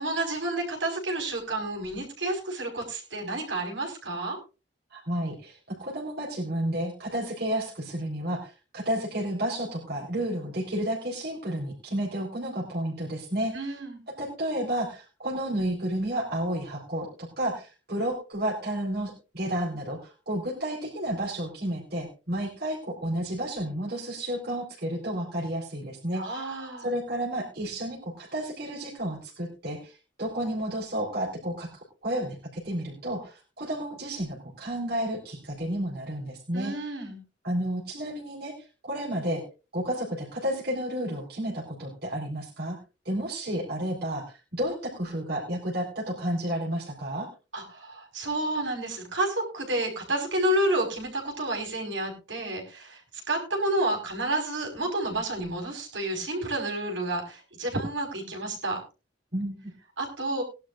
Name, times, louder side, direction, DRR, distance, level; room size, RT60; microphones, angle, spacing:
voice 1, 0.0-4.4 13.5-14.0 26.1-26.9 36.5-37.2 47.5-58.8 60.0-60.4, right 1 dB, 75° right, 2 dB, 4.9 m, -30 dB
voice 2, 4.9-13.5 14.1-26.2 26.8-36.7 37.4-38.5 38.8-39.4 39.7-42.8 43.0-47.3 59.3-59.7, right 1 dB, 55° right, -3 dB, 4.1 m, -31 dB
20.0 x 11.5 x 2.5 m, 0.31 s
head